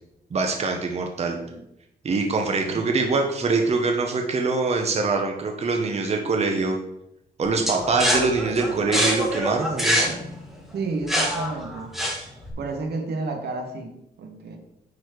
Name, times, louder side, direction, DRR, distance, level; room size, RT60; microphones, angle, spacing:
voice 1, 0.3-1.4 2.0-6.8 7.4-10.2, right 3 dB, 40° right, 3 dB, 1.0 m, -24 dB
voice 2, 1.3-1.6 2.7-3.0 10.7-11.9 12.6-14.6, right 3 dB, 75° right, 4 dB, 1.5 m, -31 dB
sound 1, 7.7-12.5, equal, ahead, 1.7 m, -25 dB
9.6 x 4.4 x 4.7 m, 0.81 s
cardioid pair, 120°, 17 cm